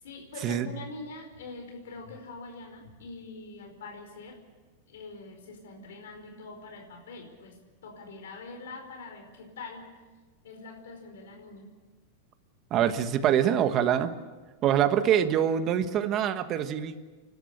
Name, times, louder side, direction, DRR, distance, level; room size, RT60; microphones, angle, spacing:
voice 1, 0.0-4.4 4.9-9.9 10.4-11.7, left 3 dB, 85° left, 3 dB, 5.0 m, -44 dB
voice 2, 12.7-14.1 14.6-16.9, right 9 dB, 30° right, 9 dB, 1.3 m, -24 dB
29.5 x 12.5 x 8.7 m, 1.3 s
supercardioid pair, 155°, 0 cm